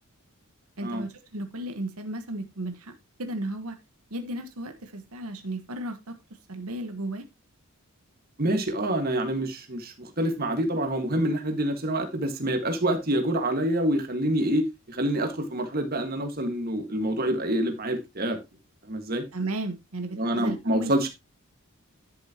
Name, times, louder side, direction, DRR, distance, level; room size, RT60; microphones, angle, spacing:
voice 1, 0.8-2.9 3.2-3.8 4.1-6.2 6.5-7.2 19.3-21.1, right 1 dB, 85° right, 1.3 m, -34 dB
voice 2, 8.4-18.4 18.9-19.2 20.1-21.1, right 1 dB, 45° right, 1.7 m, -27 dB
11.0 x 7.2 x 2.9 m
head